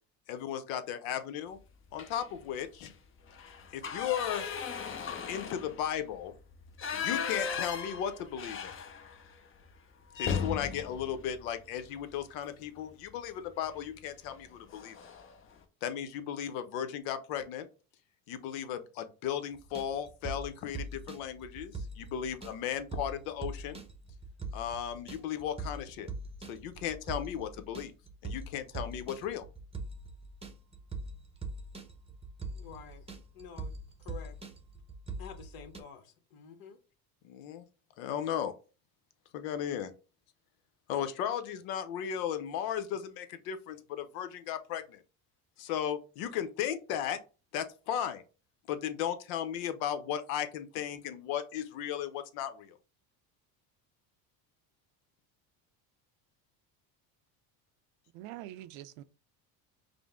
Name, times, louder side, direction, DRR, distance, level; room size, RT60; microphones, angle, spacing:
voice 1, 0.3-1.6 1.9-2.9 3.7-4.4 5.3-6.3 6.9-8.7 10.1-14.9 15.8-17.7 18.3-23.8 24.5-26.1 26.4-27.9 28.2-29.4 37.2-37.6 38.0-38.5 39.3-39.9 40.9-45.0 45.6-47.2 47.5-48.2 48.7-52.7, left 9 dB, 85° left, 0.7 m, -36 dB
sound 1, 1.9-2.4 2.7-2.9 3.3-9.3 9.6-9.7 10.1-12.3 13.6-13.9 14.3-14.4 14.7-15.3, left 6 dB, 30° left, 0.6 m, -37 dB
sound 2, 19.5-35.8, right 3 dB, 15° right, 0.7 m, -42 dB
voice 2, 32.5-33.0 33.3-34.4 35.2-36.8, left 7 dB, 60° left, 1.0 m, -49 dB
voice 3, 58.1-59.0, right 14 dB, 85° right, 0.5 m, -44 dB
5.1 x 2.0 x 3.6 m
supercardioid pair, 105°, 41 cm